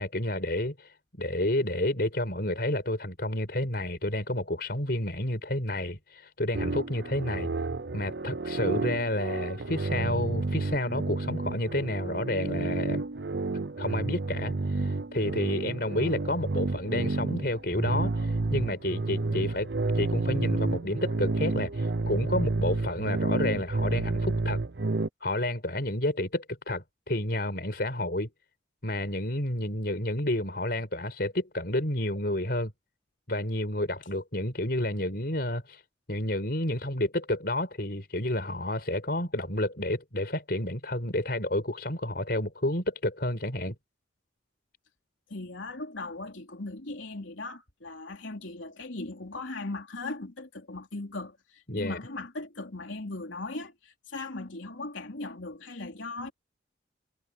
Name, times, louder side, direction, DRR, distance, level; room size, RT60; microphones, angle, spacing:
voice 1, 0.0-7.5 7.9-13.0 13.8-19.7 19.9-24.6 25.2-28.3 28.8-32.7 33.3-35.8 36.1-43.8 51.7-52.0, left 1 dB, 55° left, 5.0 m, -30 dB
sound 1, 6.5-25.1, right 3 dB, 65° right, 0.7 m, -30 dB
voice 2, 45.3-56.3, left 2 dB, 90° left, 3.5 m, -38 dB
head